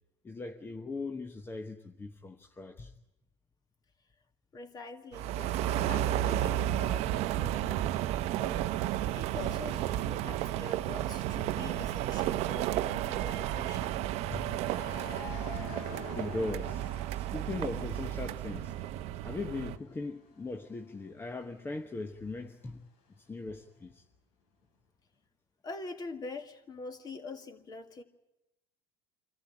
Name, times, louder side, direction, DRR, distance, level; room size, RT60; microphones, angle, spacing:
voice 1, 0.2-2.9 14.3-14.5 16.2-18.7 19.2-22.8 23.3-24.0, left 3 dB, 20° left, 1.1 m, -39 dB
voice 2, 4.5-7.9 8.3-8.6 9.1-14.1 25.6-28.0, left 3 dB, 35° left, 2.1 m, -45 dB
sound 1, 5.1-19.8, right 13 dB, 60° right, 0.8 m, -32 dB
sound 2, 14.1-18.0 18.4-22.0, left 5 dB, 80° left, 4.0 m, -48 dB
24.5 x 14.5 x 10.0 m
supercardioid pair, 95°, 12 cm